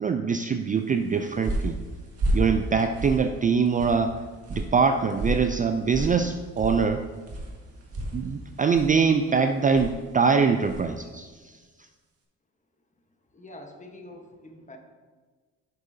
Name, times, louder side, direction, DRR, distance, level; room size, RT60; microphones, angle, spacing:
voice 1, 0.0-1.8 2.3-4.2 4.5-7.0 8.1-11.5, right 5 dB, 30° right, 7 dB, 0.3 m, -23 dB
sound 1, 0.9-11.0, right 1 dB, 50° right, 1.7 m, -33 dB
voice 2, 13.3-14.8, left 1 dB, 25° left, 3 dB, 1.2 m, -45 dB
8.6 x 6.7 x 2.7 m, 1.4 s
cardioid pair, 90°, 30 cm